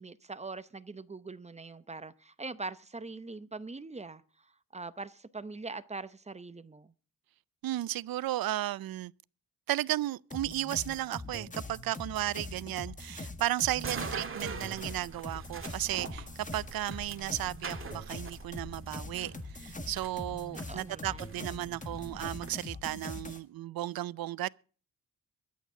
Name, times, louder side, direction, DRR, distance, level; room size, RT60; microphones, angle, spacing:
voice 1, 0.0-4.2 4.7-6.9 20.7-21.8, right 3 dB, 20° right, 0.7 m, -42 dB
voice 2, 7.6-9.1 9.7-24.5, right 14 dB, 75° right, 0.5 m, -34 dB
sound 1, 10.3-23.4, left 2 dB, 20° left, 1.6 m, -43 dB
sound 2, 13.8-22.5, right 5 dB, 35° right, 1.9 m, -44 dB
23.0 x 8.4 x 3.7 m
wide cardioid pair, 135°, 35 cm